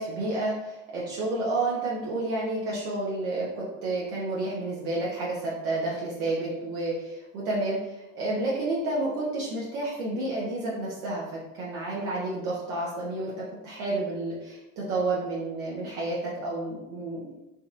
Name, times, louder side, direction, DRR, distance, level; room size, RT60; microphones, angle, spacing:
voice 1, 0.0-17.4, right 2 dB, 80° right, -6 dB, 1.0 m, -30 dB
3.9 x 2.5 x 2.5 m, 0.97 s
hypercardioid pair, 75°, 42 cm